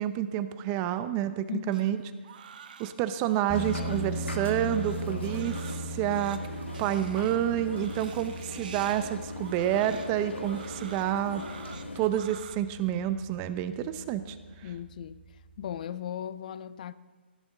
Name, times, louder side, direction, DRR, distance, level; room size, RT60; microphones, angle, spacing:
voice 1, 0.0-2.0 2.8-11.4 11.9-14.7, right 11 dB, 25° right, 0.6 m, -29 dB
Crying sobbing, 1.7-12.5, right 7 dB, 50° right, 1.0 m, -48 dB
sound 1, 3.5-12.1, left 2 dB, 85° left, 1.9 m, -40 dB
sound 2, 3.5-15.8, right 1 dB, 5° left, 1.1 m, -40 dB
voice 2, 14.6-15.2 15.6-16.9, left 9 dB, 45° left, 0.5 m, -37 dB
17.0 x 10.5 x 3.9 m
figure-of-eight pair, 140°, 6 cm